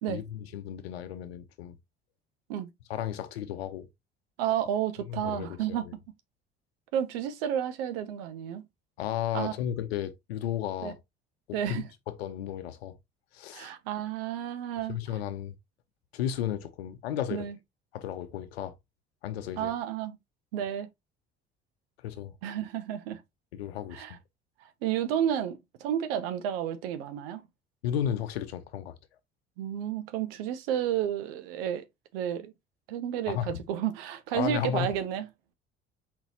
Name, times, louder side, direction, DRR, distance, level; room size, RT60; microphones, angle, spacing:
voice 1, 0.1-1.7 2.9-3.9 5.1-5.9 9.0-11.0 11.5-13.0 13.3-13.7 14.9-15.5 16.1-17.5 17.9-18.7 19.2-19.7 22.0-22.3 23.5-24.0 27.8-29.0 33.3-33.6 34.3-34.9, left 10 dB, 70° left, 0.8 m, -34 dB
voice 2, 4.4-5.8 6.9-8.6 9.3-9.5 10.8-10.9 11.5-11.8 13.5-15.0 17.3-17.6 19.6-20.2 20.5-20.9 22.4-23.2 23.9-24.2 24.6-27.4 29.6-31.8 32.1-32.5 32.9-35.2, right 10 dB, 60° right, 0.9 m, -31 dB
4.4 x 4.0 x 2.8 m
figure-of-eight pair, 55°, 32 cm